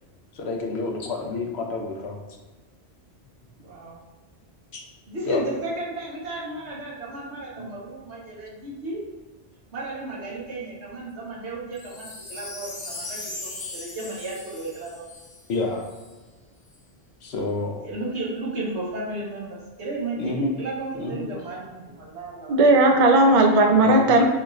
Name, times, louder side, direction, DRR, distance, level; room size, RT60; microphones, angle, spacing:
voice 1, 0.3-2.2 4.7-4.8 5.3-5.4 15.5-15.9 17.2-17.7 20.2-20.5 21.0-21.3 23.7-24.1, left 3 dB, 75° left, 1 dB, 1.0 m, -29 dB
voice 2, 3.6-4.0 5.1-9.0 9.7-15.1 17.8-22.6, right 2 dB, 85° right, -4 dB, 1.4 m, -34 dB
Wind chime, 11.7-16.1 16.7-16.8, left 2 dB, 25° left, 0.5 m, -38 dB
voice 3, 22.5-24.2, right 2 dB, 45° right, 3 dB, 0.4 m, -16 dB
6.4 x 2.5 x 3.1 m, 1.3 s
omnidirectional pair, 1.1 m